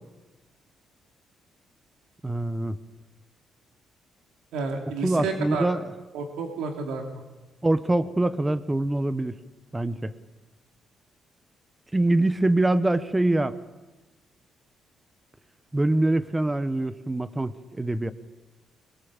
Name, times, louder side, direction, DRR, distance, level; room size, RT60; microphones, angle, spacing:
voice 1, 2.2-2.8 5.0-5.8 7.6-9.4 9.7-10.1 11.9-13.5 15.7-18.1, right 2 dB, 15° right, 14 dB, 1.2 m, -24 dB
voice 2, 4.5-5.6 6.1-7.2, right 4 dB, 90° right, 3 dB, 2.8 m, -31 dB
21.5 x 21.5 x 7.4 m, 1.2 s
cardioid pair, 90°, 0 cm